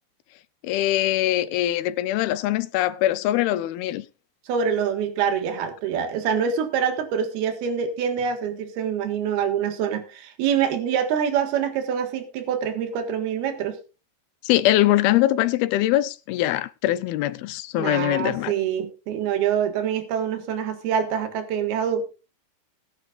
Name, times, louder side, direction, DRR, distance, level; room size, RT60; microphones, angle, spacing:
voice 1, 0.6-4.1 14.4-18.5, left 14 dB, 80° left, 2.7 m, -22 dB
voice 2, 4.5-13.8 17.8-22.2, right 7 dB, 80° right, 3.7 m, -25 dB
21.0 x 9.6 x 2.5 m
omnidirectional pair, 4.4 m